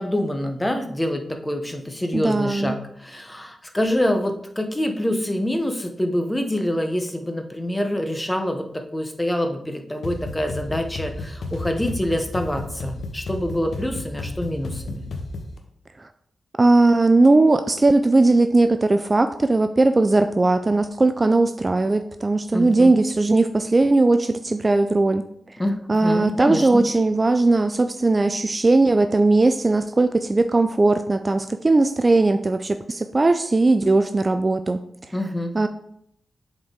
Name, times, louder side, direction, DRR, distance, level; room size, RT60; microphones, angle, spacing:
voice 1, 0.0-15.1 22.5-23.0 25.6-26.8 35.1-35.5, left 1 dB, 10° left, 5 dB, 0.9 m, -26 dB
voice 2, 2.1-2.8 16.6-25.2 25.9-34.8 35.5-35.7, right 2 dB, 30° right, 8 dB, 0.3 m, -18 dB
sound 1, 10.0-15.6, left 2 dB, 75° left, 0.9 m, -33 dB
7.6 x 4.3 x 3.8 m, 0.72 s
wide cardioid pair, 90°, 0 cm